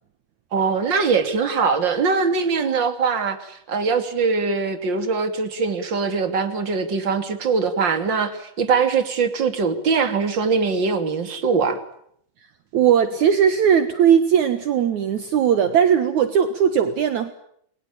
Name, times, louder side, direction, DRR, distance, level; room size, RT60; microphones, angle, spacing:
voice 1, 0.5-11.8, right 5 dB, 35° right, 8 dB, 3.3 m, -22 dB
voice 2, 12.7-17.3, right 8 dB, 65° right, 10 dB, 2.6 m, -18 dB
30.0 x 22.5 x 8.6 m, 0.70 s
omnidirectional pair, 3.9 m